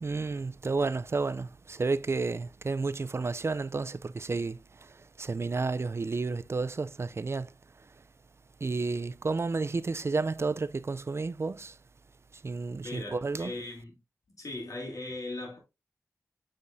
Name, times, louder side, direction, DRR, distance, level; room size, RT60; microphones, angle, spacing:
voice 1, 0.0-7.5 8.6-11.8 12.3-13.6, right 3 dB, 45° right, 0.4 m, -31 dB
voice 2, 12.8-14.0 14.4-15.6, left 2 dB, 70° left, 2.9 m, -38 dB
8.0 x 4.9 x 2.6 m
wide cardioid pair, 55°, 6 cm